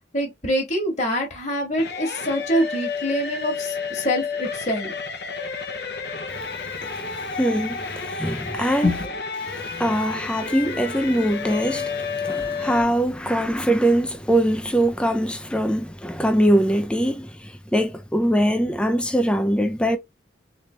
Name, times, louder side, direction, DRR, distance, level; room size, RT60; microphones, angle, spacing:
voice 1, 0.1-4.9 8.8-9.2, equal, 40° left, 1.5 m, -25 dB
sound 1, 1.8-12.8, left 5 dB, 60° left, 0.8 m, -31 dB
voice 2, 6.8-8.9 9.4-20.0, equal, 5° left, 0.5 m, -22 dB
3.9 x 3.3 x 3.3 m
head